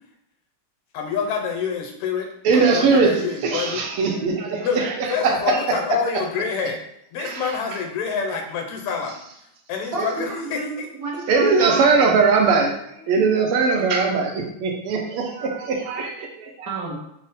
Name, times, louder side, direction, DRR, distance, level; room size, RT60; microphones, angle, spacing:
voice 1, 0.9-3.9 4.6-4.8 5.1-6.8 7.1-9.2 9.7-10.9, left 6 dB, 90° left, 2 dB, 1.7 m, -27 dB
voice 2, 2.4-5.8 7.2-7.4 11.3-16.7, right 4 dB, 85° right, 2 dB, 1.6 m, -20 dB
voice 3, 9.9-12.0 16.7-17.0, right 3 dB, 60° right, -5 dB, 0.9 m, -29 dB
4.1 x 2.0 x 3.9 m, 0.76 s
omnidirectional pair, 2.4 m